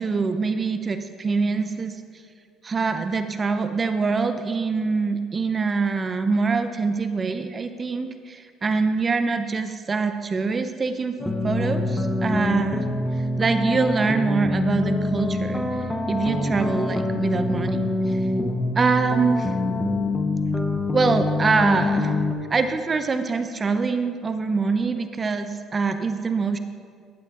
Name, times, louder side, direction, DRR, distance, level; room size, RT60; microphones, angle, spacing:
voice 1, 0.0-2.0 2.6-11.2 11.4-12.9 13.4-15.6 16.1-18.2 18.8-19.5 20.9-22.2 22.5-26.6, right 4 dB, 30° right, 9 dB, 0.5 m, -24 dB
sound 1, 11.2-22.3, left 2 dB, 10° left, 0.8 m, -25 dB
12.0 x 8.5 x 2.4 m, 2.1 s
cardioid pair, 90°, 0 cm